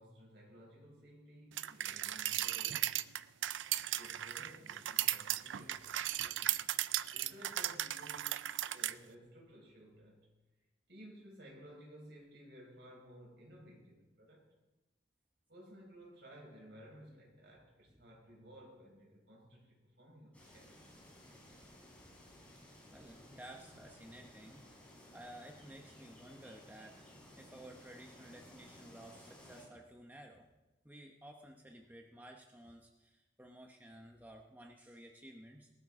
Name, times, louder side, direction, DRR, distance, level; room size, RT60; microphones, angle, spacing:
voice 1, 0.0-3.1 4.0-10.3 10.9-14.4 15.5-20.8, equal, 65° right, -1 dB, 5.2 m, -56 dB
sound 1, 1.6-8.9, right 13 dB, 85° right, 0.4 m, -36 dB
sound 2, 20.3-29.7, left 1 dB, 5° left, 4.1 m, -57 dB
voice 2, 22.8-27.0 27.4-30.5 30.8-35.7, right 1 dB, 10° right, 1 dB, 0.9 m, -54 dB
19.5 x 13.0 x 3.7 m, 1.1 s
head